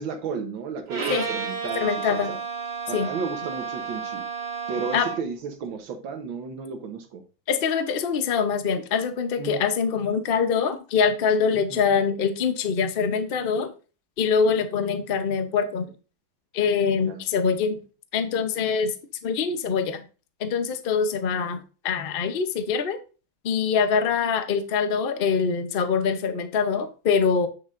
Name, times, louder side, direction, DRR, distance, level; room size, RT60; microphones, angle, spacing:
voice 1, 0.0-2.4 2.9-4.2 4.7-7.2 9.4-9.6 11.7-11.8 16.9-17.2, right 5 dB, 80° right, 6 dB, 1.8 m, -33 dB
Bowed string instrument, 0.9-5.4, right 5 dB, 60° right, 2.1 m, -32 dB
voice 2, 1.8-2.3 2.9-3.1 4.9-5.1 7.5-13.7 14.2-15.9 16.5-17.8 18.1-18.9 19.2-20.0 20.4-23.0 23.4-27.5, left 6 dB, 65° left, 9 dB, 0.5 m, -24 dB
8.6 x 6.5 x 2.5 m, 0.35 s
omnidirectional pair, 2.1 m